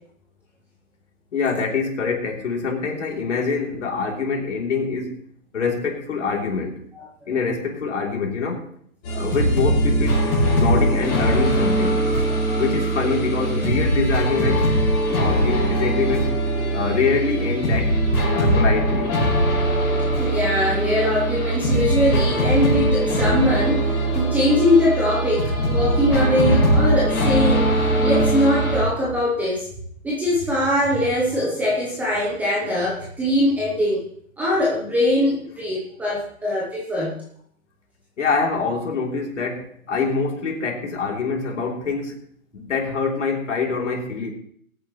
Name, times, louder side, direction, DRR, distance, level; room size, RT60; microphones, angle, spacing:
voice 1, 1.3-5.2 5.5-6.8 7.3-8.6 9.1-10.3 10.5-12.0 12.5-14.7 15.2-16.3 16.7-18.0 18.3-19.1 38.2-42.1 42.5-44.3, left 5 dB, 55° left, 3.3 m, -25 dB
sound 1, 9.0-28.8, right 1 dB, 25° left, 4.9 m, -21 dB
voice 2, 20.2-29.7 30.0-34.0 34.4-37.2, left 1 dB, 5° right, 0.9 m, -22 dB
22.0 x 9.0 x 3.1 m
hypercardioid pair, 155°, 43 cm